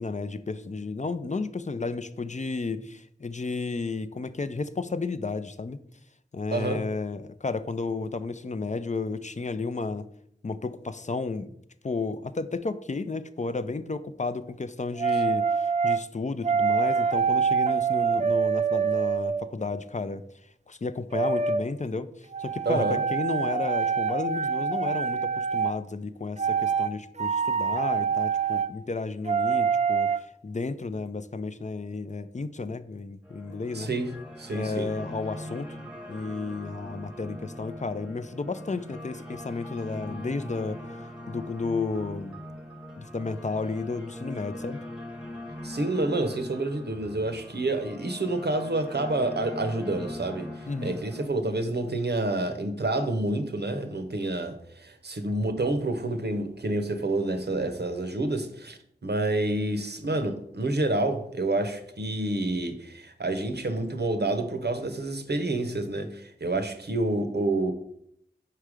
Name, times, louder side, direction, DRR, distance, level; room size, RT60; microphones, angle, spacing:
voice 1, 0.0-5.8 6.3-10.1 10.4-11.5 11.8-20.3 20.7-33.9 34.5-35.8 36.1-40.8 41.3-42.4 43.0-44.8 50.7-51.0, left 3 dB, 40° left, 0.4 m, -32 dB
voice 2, 6.5-6.8 22.7-23.0 33.7-34.1 34.4-34.9 45.6-50.5 50.8-67.7, right 2 dB, 65° right, 0.7 m, -28 dB
sound 1, 15.0-16.0 16.4-19.5 21.1-21.6 22.3-25.7 26.4-26.9 27.2-28.7 29.2-30.2, right 6 dB, 40° right, 0.4 m, -25 dB
sound 2, 33.2-51.3, left 1 dB, 5° right, 0.9 m, -41 dB
4.9 x 4.5 x 4.9 m
wide cardioid pair, 45°, 19 cm